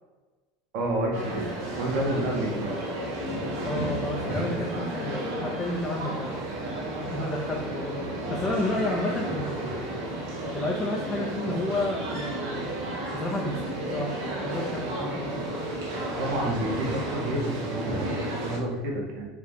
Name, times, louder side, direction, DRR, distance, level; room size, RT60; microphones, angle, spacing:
voice 1, 0.7-1.5 1.8-2.7 16.0-19.3, right 1 dB, 50° right, -1 dB, 1.9 m, -29 dB
sound 1, 1.1-18.6, right 1 dB, 70° right, 2.1 m, -32 dB
voice 2, 3.6-6.4 7.0-10.0 10.5-12.7 13.1-14.2 14.4-15.4, left 1 dB, 10° left, -3 dB, 0.9 m, -31 dB
5.7 x 4.8 x 4.8 m, 1.3 s
cardioid pair, 175°, 0 cm